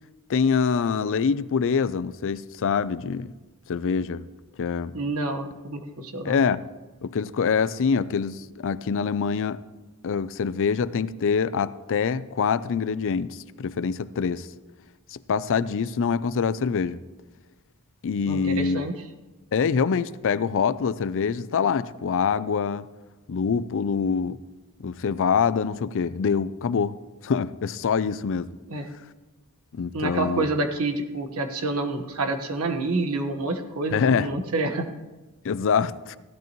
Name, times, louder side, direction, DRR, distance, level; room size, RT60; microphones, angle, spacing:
voice 1, 0.3-3.3 3.7-4.2 4.6-4.9 6.2-6.7 7.0-9.6 10.0-14.5 15.1-17.0 18.0-18.8 19.5-22.9 23.3-24.4 24.8-27.0 27.2-28.5 29.7-30.5 33.9-34.3 35.4-36.2, left 6 dB, 60° left, 0.4 m, -25 dB
voice 2, 4.9-6.4 18.3-18.9 28.7-28.9 29.9-34.9, right 2 dB, 70° right, 1.3 m, -28 dB
16.0 x 12.0 x 3.0 m
head